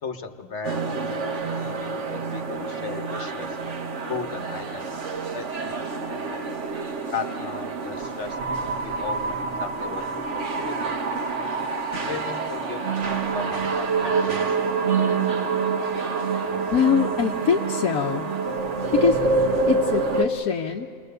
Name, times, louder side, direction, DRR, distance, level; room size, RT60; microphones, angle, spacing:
voice 1, 0.0-3.6 4.1-5.0 5.3-6.5 7.1-10.9 12.1-15.5, left 5 dB, 55° left, 7 dB, 1.2 m, -37 dB
sound 1, 0.6-20.2, right 4 dB, 60° right, 1.5 m, -27 dB
voice 2, 16.7-18.3 18.9-19.2 19.7-20.9, left 7 dB, 90° left, 1 dB, 1.3 m, -23 dB
28.0 x 22.0 x 6.7 m, 2.2 s
omnidirectional pair, 1.5 m